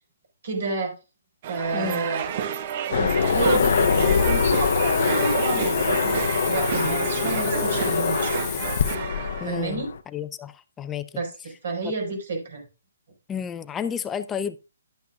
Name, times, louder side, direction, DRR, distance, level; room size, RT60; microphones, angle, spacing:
voice 1, 0.4-0.9 1.5-2.3 2.9-6.2 6.5-8.5 9.5-9.8 11.2-11.3 11.6-12.6, right 3 dB, 60° right, 4.7 m, -29 dB
sound 1, 1.4-9.5, right 9 dB, 40° right, 0.7 m, -30 dB
voice 2, 1.7-2.1 9.4-11.1 11.8-11.9 13.3-14.6, left 8 dB, 15° left, 0.5 m, -32 dB
Aircraft, 2.9-10.0, left 6 dB, 60° left, 0.7 m, -24 dB
Hiss, 3.2-9.0, left 11 dB, 30° left, 0.9 m, -35 dB
11.5 x 8.4 x 2.3 m
hypercardioid pair, 145°, 0 cm